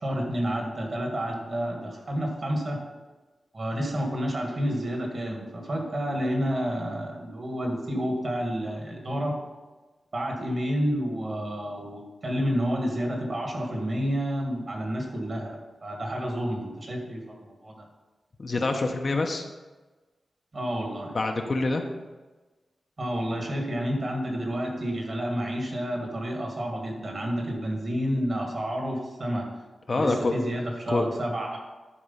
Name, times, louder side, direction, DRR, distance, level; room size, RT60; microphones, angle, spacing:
voice 1, 0.0-2.8 3.5-9.4 10.1-17.9 20.5-21.2 23.0-29.5 29.9-31.6, equal, 40° right, 1 dB, 1.9 m, -30 dB
voice 2, 18.4-19.4 21.1-21.8 29.9-30.3 30.9-31.1, left 3 dB, 40° left, 3 dB, 0.8 m, -26 dB
11.0 x 4.7 x 5.6 m, 1.2 s
wide cardioid pair, 150°, 0 cm